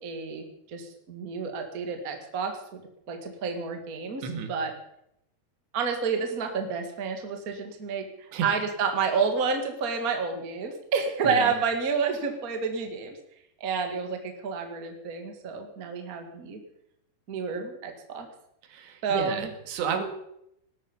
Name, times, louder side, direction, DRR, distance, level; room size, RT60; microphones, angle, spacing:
voice 1, 0.0-2.8 3.1-4.7 5.7-8.1 8.4-13.2 13.6-16.6 17.3-18.3 19.0-19.5, right 5 dB, 35° right, 5 dB, 1.4 m, -29 dB
voice 2, 4.2-4.5 8.3-8.5 11.2-11.5 18.7-20.0, right 6 dB, 85° right, 7 dB, 4.1 m, -32 dB
19.5 x 12.5 x 5.3 m, 0.77 s
omnidirectional pair, 4.9 m